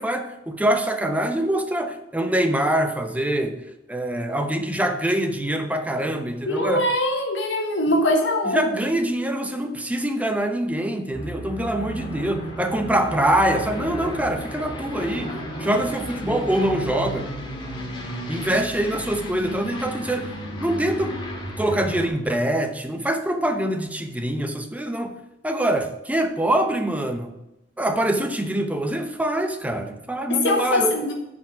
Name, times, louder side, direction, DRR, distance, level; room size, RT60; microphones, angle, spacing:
voice 1, 0.0-3.6 3.9-6.8 8.5-17.3 18.3-20.3 20.6-21.2 21.6-25.2 25.4-27.4 27.8-30.9, right 1 dB, 10° right, 6 dB, 0.8 m, -24 dB
voice 2, 6.5-8.7 30.3-31.1, left 1 dB, 80° left, 1 dB, 1.4 m, -22 dB
Aircraft, 11.1-22.1, equal, 25° left, 2.0 m, -33 dB
9.1 x 5.3 x 5.9 m, 0.92 s
head